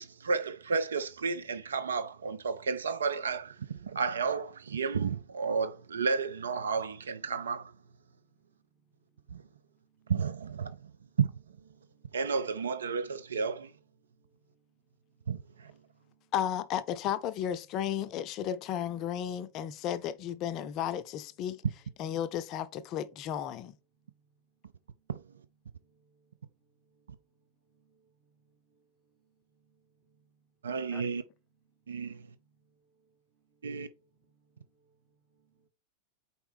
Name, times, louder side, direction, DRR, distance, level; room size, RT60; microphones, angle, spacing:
voice 1, 0.0-7.7 9.3-9.4 10.1-10.8 11.2-11.3 12.1-13.7 15.3-15.7 25.1-25.2 30.6-31.2 31.9-32.2 33.6-33.9, right 5 dB, 70° right, 0.4 m, -32 dB
voice 2, 9.3-10.1 11.7-12.2 14.0-14.6 15.2-16.3 24.9-25.1 25.7-26.3 26.8-27.1 27.7-28.1 28.4-28.9 29.1-30.3 32.0-35.0 35.3-35.7, right 5 dB, 35° right, 1.3 m, -71 dB
voice 3, 16.3-21.6 22.0-23.7 30.9-31.2, left 10 dB, 40° left, 0.5 m, -34 dB
4.4 x 4.3 x 5.2 m
figure-of-eight pair, 90°, 0 cm